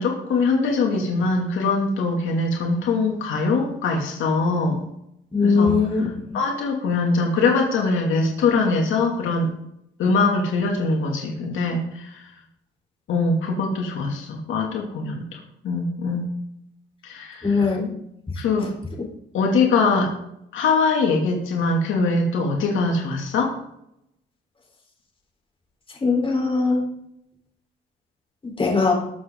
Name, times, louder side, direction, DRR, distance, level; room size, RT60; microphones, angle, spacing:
voice 1, 0.0-4.8 5.4-9.5 10.0-12.3 13.1-15.4 15.6-16.3 17.0-17.7 18.4-18.7 19.3-20.1 20.5-23.5, left 3 dB, 80° left, 0 dB, 2.9 m, -22 dB
voice 2, 5.3-6.1 17.4-17.9 26.0-26.8 28.4-28.9, left 4 dB, 25° left, 0 dB, 4.4 m, -20 dB
20.5 x 7.7 x 4.0 m, 0.78 s
cardioid pair, 90°, 20 cm